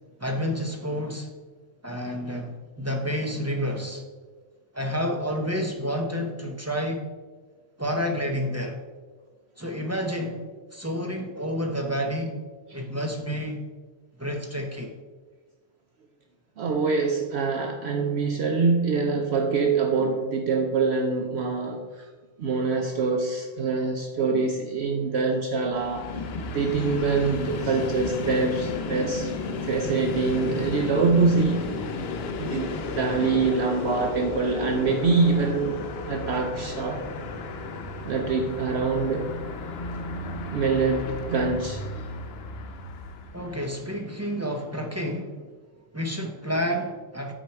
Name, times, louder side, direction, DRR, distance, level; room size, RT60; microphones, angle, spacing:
voice 1, 0.2-1.3 1.8-4.0 4.7-7.0 7.8-8.8 9.6-10.4 10.7-12.4 12.7-13.6 14.2-14.9 43.3-45.3 45.9-47.3, equal, 15° right, 2 dB, 0.5 m, -29 dB
voice 2, 16.6-22.1 22.4-26.2 26.5-29.3 29.6-31.7 32.4-35.8 36.0-37.0 38.0-39.4 40.5-41.9, right 4 dB, 60° right, 4 dB, 0.8 m, -25 dB
Train, 25.6-43.8, left 3 dB, 60° left, 0.8 m, -33 dB
9.0 x 4.5 x 4.4 m, 1.4 s
omnidirectional pair, 1.3 m